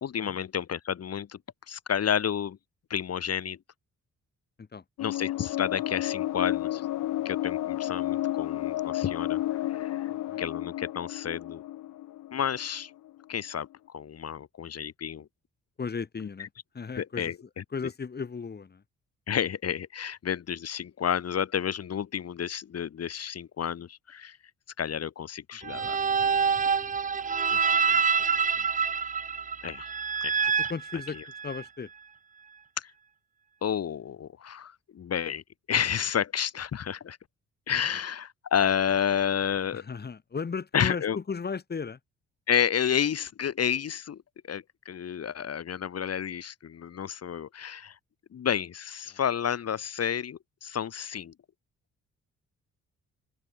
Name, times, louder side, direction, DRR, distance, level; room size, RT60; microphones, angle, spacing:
voice 1, 0.0-1.4 1.7-2.6 2.9-3.6 5.0-6.9 7.2-10.1 10.4-11.6 12.3-12.9 13.3-15.3 17.0-17.3 19.3-24.4 24.8-26.0 27.7-28.0 29.6-29.9 30.2-30.6 32.8-32.9 33.6-35.4 35.7-37.2 37.7-39.8 40.7-41.2 42.5-44.2 44.5-48.0 48.3-51.3, left 8 dB, 55° left, 3.2 m, -30 dB
sound 1, 5.0-13.1, left 14 dB, 80° left, 1.8 m, -32 dB
voice 2, 10.1-10.4 15.8-16.5 16.7-18.8 25.7-25.9 27.5-28.0 28.6-28.7 30.7-31.9 37.9-38.0 39.7-42.0 49.1-49.2, left 5 dB, 35° left, 3.1 m, -36 dB
sound 2, 25.6-31.6, right 6 dB, 25° right, 0.7 m, -27 dB
open air
cardioid pair, 90°, 30 cm